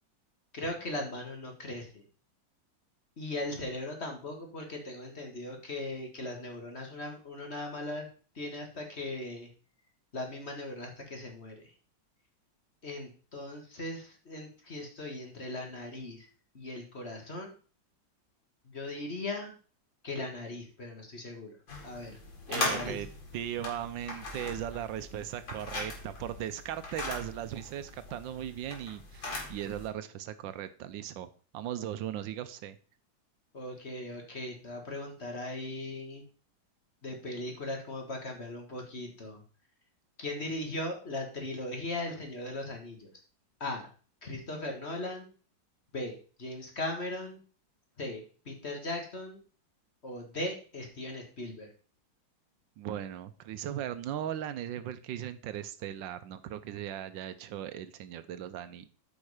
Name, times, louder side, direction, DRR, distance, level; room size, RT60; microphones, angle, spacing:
voice 1, 0.5-2.0 3.2-8.1 8.4-9.5 10.1-11.7 12.8-16.3 16.5-17.5 18.6-19.5 20.0-21.6 21.8-22.2 22.5-23.0 33.5-36.2 37.0-39.4 40.2-43.1 43.6-43.9 44.2-45.3 45.9-46.1 46.4-47.4 48.0-49.4 50.0-51.7, left 2 dB, 35° left, 2 dB, 1.7 m, -38 dB
sound 1, 21.7-29.9, left 3 dB, 80° left, 3.0 m, -39 dB
voice 2, 22.5-23.1 23.3-32.8 52.8-58.9, right 11 dB, 80° right, 12 dB, 1.3 m, -38 dB
8.7 x 5.3 x 4.9 m, 0.39 s
omnidirectional pair, 2.1 m